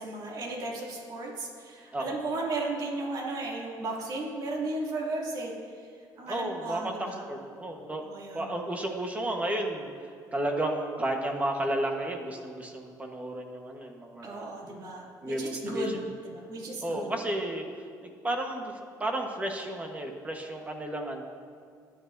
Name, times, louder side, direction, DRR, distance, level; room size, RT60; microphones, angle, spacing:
voice 1, 0.0-5.5 6.2-7.3 8.0-8.5 14.2-16.0 16.3-17.1, right 2 dB, 55° right, -3 dB, 2.6 m, -35 dB
voice 2, 6.3-6.9 7.3-8.0 8.3-9.9 10.3-14.5 15.2-16.1 16.8-17.6 18.0-21.2, right 1 dB, 20° right, 2 dB, 1.3 m, -32 dB
21.0 x 9.0 x 2.7 m, 2.2 s
cardioid pair, 110°, 8 cm